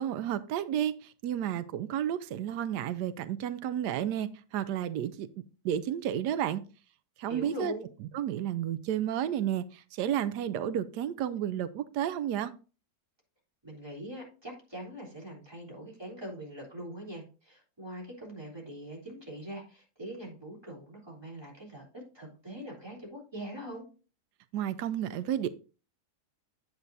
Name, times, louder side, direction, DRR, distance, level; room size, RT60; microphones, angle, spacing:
voice 1, 0.0-5.3 5.6-6.6 7.2-7.7 8.1-12.5 24.5-25.5, right 10 dB, 90° right, 12 dB, 1.2 m, -31 dB
voice 2, 7.2-7.8 13.6-23.8, equal, 15° right, -3 dB, 3.5 m, -42 dB
9.6 x 8.1 x 2.6 m, 0.35 s
omnidirectional pair, 1.7 m